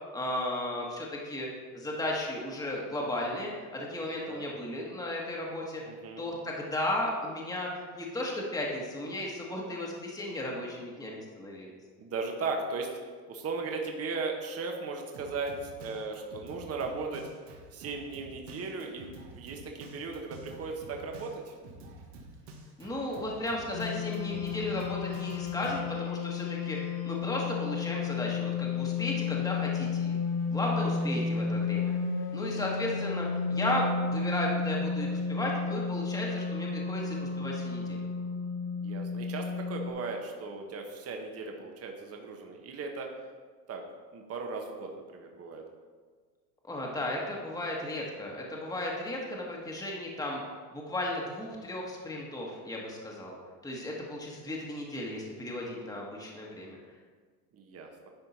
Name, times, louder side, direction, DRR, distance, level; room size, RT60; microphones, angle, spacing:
voice 1, 0.1-1.5 1.7-5.8 6.2-11.7 22.8-30.2 30.5-31.9 32.3-38.1 46.6-50.4 50.7-53.4 53.6-56.8, left 1 dB, 10° left, -2 dB, 1.5 m, -35 dB
voice 2, 5.8-6.2 12.0-12.9 13.3-17.3 17.7-21.5 31.0-31.1 38.8-43.1 43.7-43.8 44.1-45.6 57.5-58.1, right 4 dB, 30° right, 2 dB, 1.2 m, -37 dB
Drum kit, 15.1-25.8, right 2 dB, 70° right, 1.5 m, -49 dB
sound 1, 23.7-39.9, left 5 dB, 65° left, 1.0 m, -32 dB
10.5 x 4.4 x 4.2 m, 1.5 s
hypercardioid pair, 95°, 46 cm